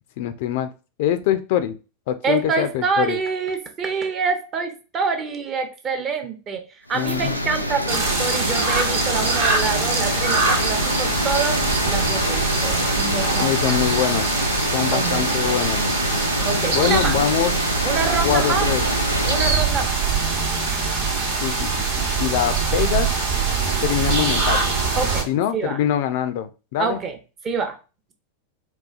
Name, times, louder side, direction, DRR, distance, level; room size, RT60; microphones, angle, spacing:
voice 1, 0.2-0.7 1.0-1.8 2.1-3.2 6.9-7.4 13.4-14.3 14.7-15.8 16.7-17.5 18.2-18.8 21.4-21.7 22.0-23.1 23.8-24.8 25.3-27.0, left 11 dB, 50° left, 10 dB, 0.3 m, -23 dB
voice 2, 2.2-6.6 6.9-13.8 14.9-15.2 16.4-17.2 17.9-18.7 19.3-20.0 25.0-25.8 26.8-27.2 27.4-27.8, right 5 dB, 25° right, 6 dB, 0.6 m, -26 dB
sound 1, 6.9-19.5, equal, 90° right, 0.4 m, -25 dB
sound 2, 7.9-25.2, right 4 dB, 55° right, 0.8 m, -23 dB
3.9 x 2.2 x 2.4 m, 0.32 s
figure-of-eight pair, 90°, 0 cm